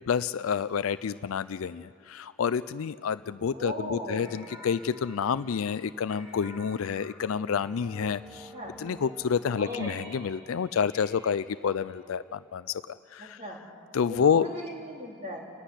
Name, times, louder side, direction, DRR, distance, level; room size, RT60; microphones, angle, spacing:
voice 1, 0.1-8.5 8.8-13.4 13.9-14.5, left 6 dB, 70° left, 14 dB, 0.4 m, -29 dB
voice 2, 3.5-4.3 8.5-8.8 9.6-10.0 13.2-13.7 14.1-15.5, equal, 35° right, -2 dB, 3.4 m, -38 dB
sound 1, 4.2-13.1, equal, 15° right, 1.9 m, -50 dB
29.5 x 10.0 x 9.8 m, 2.6 s
head